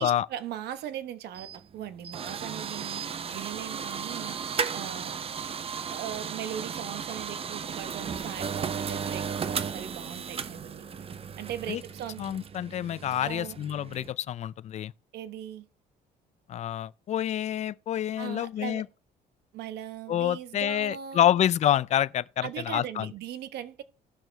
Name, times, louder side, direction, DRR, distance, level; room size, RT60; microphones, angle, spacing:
voice 1, 0.0-5.2 5.9-10.8 11.4-12.2 13.2-13.6 15.1-15.6 18.2-18.8 19.5-21.3 22.4-23.8, right 10 dB, 75° right, 1.2 m, -39 dB
sound 1, 1.3-14.1, right 6 dB, 35° right, 0.7 m, -35 dB
voice 2, 12.2-14.9 16.5-18.9 20.1-23.1, left 11 dB, 45° left, 0.4 m, -27 dB
17.0 x 6.2 x 3.3 m
cardioid pair, 110°, 17 cm